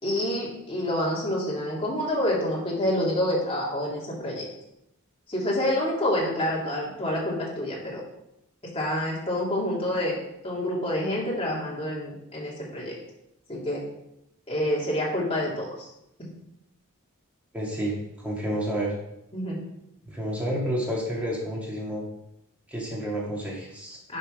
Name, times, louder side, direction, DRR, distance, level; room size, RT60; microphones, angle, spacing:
voice 1, 0.0-4.4 5.3-8.0 8.6-10.2 10.4-13.0 13.5-13.8 14.5-15.9 16.2-16.3 19.3-19.6 24.1-24.2, left 1 dB, 25° left, -5 dB, 2.6 m, -27 dB
voice 2, 17.5-18.9 20.1-22.0 22.7-24.0, equal, 5° right, -5 dB, 2.3 m, -30 dB
10.5 x 4.5 x 5.1 m, 0.84 s
head